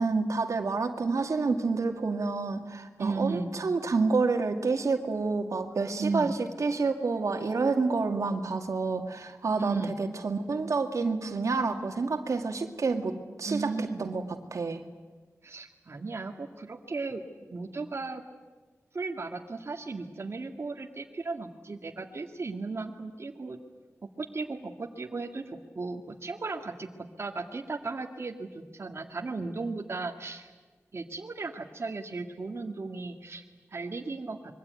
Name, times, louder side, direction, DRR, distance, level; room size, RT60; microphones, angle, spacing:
voice 1, 0.0-14.8, right 4 dB, 80° right, 5 dB, 2.2 m, -29 dB
voice 2, 3.0-3.5 6.0-6.3 9.6-9.9 13.5-14.1 15.4-18.2 18.9-23.6 24.2-26.9 27.2-30.5 30.9-33.4 33.7-34.4, right 3 dB, 55° right, 2 dB, 1.8 m, -35 dB
25.5 x 23.0 x 9.3 m, 1.3 s
wide cardioid pair, 105°, 5 cm